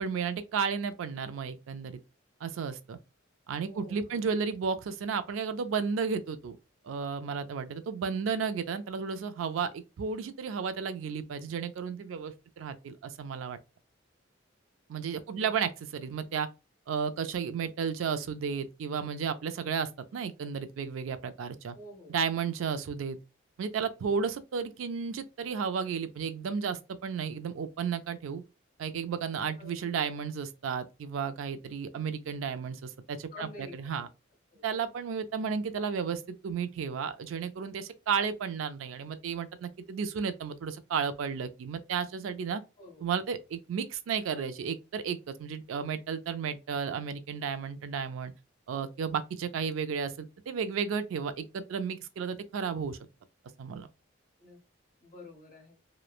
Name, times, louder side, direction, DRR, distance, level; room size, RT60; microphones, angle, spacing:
voice 1, 0.0-2.0 2.4-3.0 3.5-6.6 6.8-13.6 14.9-16.5 16.9-21.8 22.1-23.2 23.6-28.4 28.8-34.1 34.6-42.6 43.0-48.3 48.7-53.0 53.6-53.9, right 6 dB, 85° right, 0.3 m, -33 dB
voice 2, 3.6-4.3 15.3-15.5 21.7-22.2 29.6-29.7 33.3-34.1 34.5-34.6 42.8-43.0 54.4-54.6 55.0-55.8, left 2 dB, 40° left, 1.1 m, -49 dB
3.0 x 2.0 x 2.3 m
head